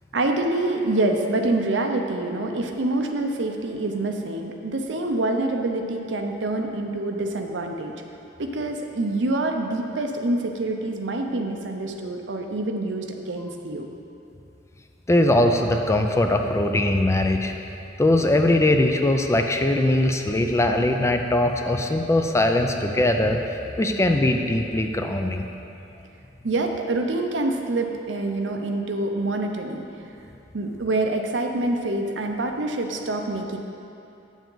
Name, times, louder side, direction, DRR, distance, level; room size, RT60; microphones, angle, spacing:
voice 1, 0.1-7.9 8.4-13.9 26.4-29.8 30.5-33.6, right 2 dB, 80° right, 4 dB, 0.7 m, -26 dB
voice 2, 15.1-17.5 18.0-25.5, left 1 dB, 15° left, 4 dB, 0.4 m, -21 dB
8.8 x 7.2 x 3.9 m, 2.7 s
head